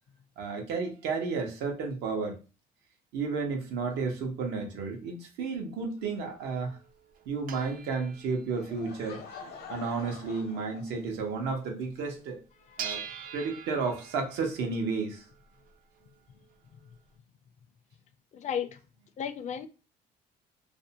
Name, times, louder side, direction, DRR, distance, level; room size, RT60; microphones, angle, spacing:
voice 1, 0.4-2.4 3.1-6.8 7.3-9.2 9.7-12.4 12.8-13.0 13.3-15.3, right 4 dB, 85° right, 0.8 m, -32 dB
sound 1, 6.0-11.5 11.8-11.9 12.2-17.1, right 8 dB, 55° right, 0.4 m, -45 dB
Laughter / Crowd, 8.6-11.4, left 6 dB, 70° left, 0.7 m, -46 dB
voice 2, 12.7-13.4 18.3-18.8 19.2-19.7, left 8 dB, 45° left, 0.4 m, -36 dB
2.5 x 2.1 x 2.7 m
cardioid pair, 110°, 17 cm